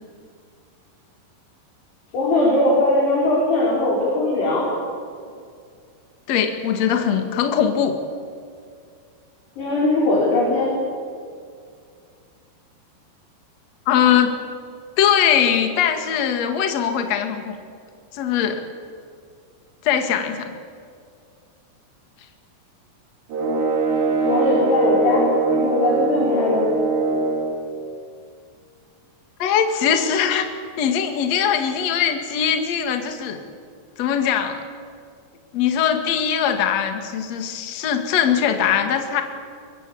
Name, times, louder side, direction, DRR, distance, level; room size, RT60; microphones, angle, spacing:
voice 1, 2.1-4.7 9.6-10.7 24.2-25.2 25.5-26.6, left 2 dB, 65° left, -6 dB, 6.7 m, -20 dB
voice 2, 6.3-8.0 13.9-14.3 15.0-17.5 18.1-18.6 19.8-20.5 29.4-30.5 30.8-33.4 34.0-34.6 35.5-39.2, left 8 dB, 50° left, 6 dB, 2.4 m, -21 dB
sound 1, 23.3-27.6, right 3 dB, 70° right, 5.7 m, -21 dB
23.5 x 22.5 x 8.6 m, 2.2 s
omnidirectional pair, 5.2 m